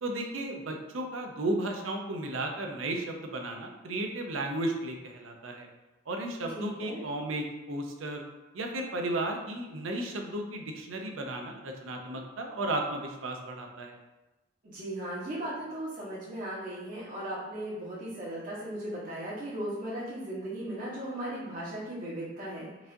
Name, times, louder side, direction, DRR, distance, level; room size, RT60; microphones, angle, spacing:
voice 1, 0.0-5.7 6.1-8.2 8.5-14.0, right 1 dB, 90° right, 3 dB, 0.6 m, -34 dB
voice 2, 6.5-7.0 14.6-22.9, right 1 dB, 45° right, -9 dB, 1.1 m, -37 dB
4.7 x 2.5 x 2.6 m, 1.0 s
head